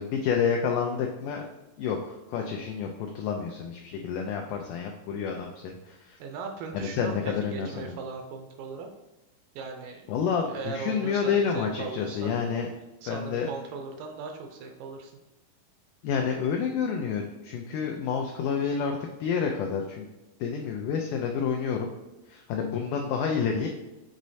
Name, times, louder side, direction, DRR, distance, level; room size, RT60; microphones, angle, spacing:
voice 1, 0.0-1.5 1.8-6.2 6.7-8.0 10.1-12.7 13.1-13.5 16.0-20.1 20.4-21.9 22.3-23.7, left 6 dB, 85° left, 1 dB, 1.8 m, -29 dB
voice 2, 6.2-8.9 9.6-10.0 10.4-12.4 13.0-15.1, right 4 dB, 80° right, 4 dB, 2.1 m, -38 dB
6.4 x 3.1 x 2.7 m, 1.0 s
omnidirectional pair, 4.2 m